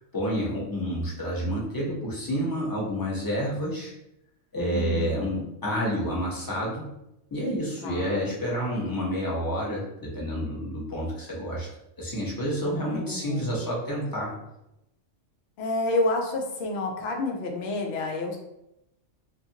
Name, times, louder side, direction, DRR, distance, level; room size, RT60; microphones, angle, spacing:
voice 1, 0.0-3.9 4.5-6.9 7.3-11.7 12.0-14.3, equal, 20° left, -5 dB, 0.6 m, -29 dB
voice 2, 4.5-5.4 7.8-8.4 12.6-13.6 15.6-18.4, left 2 dB, 65° left, 2 dB, 0.8 m, -30 dB
2.5 x 2.5 x 2.7 m, 0.85 s
omnidirectional pair, 1.3 m